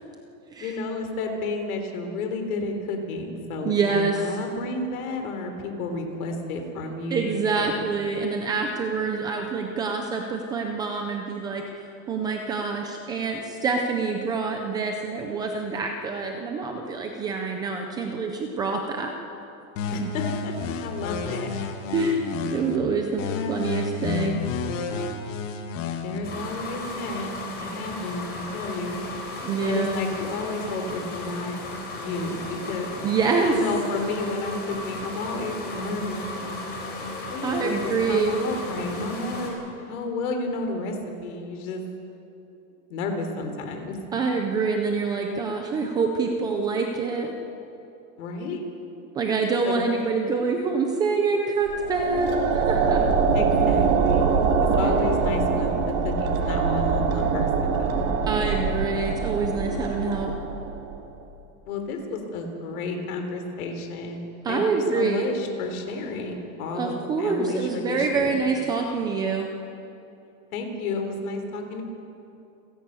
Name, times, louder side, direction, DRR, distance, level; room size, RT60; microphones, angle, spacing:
voice 1, 0.6-7.3 7.6-7.8 19.9-20.5 20.8-21.5 23.2-23.6 26.0-27.3 27.6-29.0 29.7-31.5 31.9-32.9 33.5-36.6 37.3-41.8 42.9-44.0 48.2-48.6 49.6-49.9 53.3-54.3 54.8-58.1 61.6-64.2 64.5-68.3 70.5-71.8, left 3 dB, 75° left, 5 dB, 3.9 m, -31 dB
voice 2, 3.6-4.4 7.1-19.1 21.9-24.5 29.4-30.0 33.0-33.6 37.4-38.3 44.1-47.3 49.1-53.0 54.8-54.9 58.3-60.3 64.4-65.3 66.7-69.5, right 4 dB, 10° right, 3 dB, 0.3 m, -26 dB
sound 1, 19.8-22.8 23.2-26.2, left 5 dB, 60° left, 2.1 m, -31 dB
sound 2, 26.2-39.5, left 2 dB, 25° left, 4.0 m, -35 dB
sound 3, 51.7-61.0, right 5 dB, 70° right, 3.1 m, -23 dB
29.0 x 11.0 x 8.2 m, 2.8 s
supercardioid pair, 170°, 43 cm